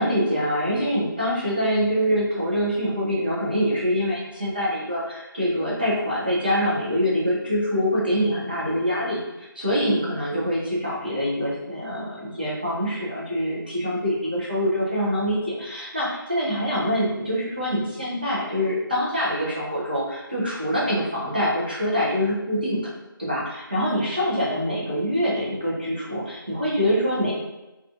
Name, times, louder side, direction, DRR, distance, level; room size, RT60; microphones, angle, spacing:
voice 1, 0.0-22.8 23.2-27.3, equal, 25° right, -7 dB, 0.5 m, -25 dB
2.5 x 2.3 x 2.4 m, 1.0 s
figure-of-eight pair, 180°, 12 cm